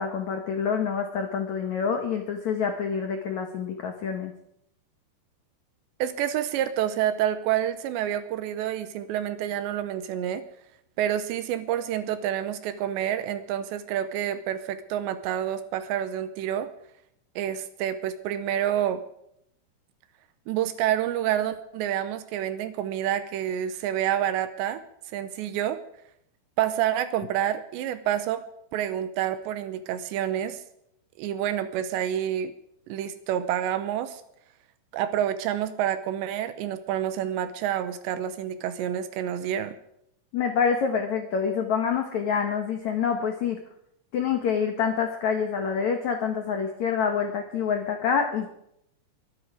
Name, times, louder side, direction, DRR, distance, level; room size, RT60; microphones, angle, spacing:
voice 1, 0.0-4.3 40.3-43.6 44.1-48.5, left 6 dB, 80° left, 4 dB, 1.6 m, -27 dB
voice 2, 6.0-10.4 11.0-16.7 17.4-19.0 20.5-24.8 25.1-25.8 26.6-28.4 28.7-30.6 31.2-32.5 32.9-34.2 34.9-39.8, right 11 dB, 75° right, 11 dB, 2.9 m, -28 dB
22.5 x 10.0 x 4.9 m, 0.75 s
omnidirectional pair, 5.4 m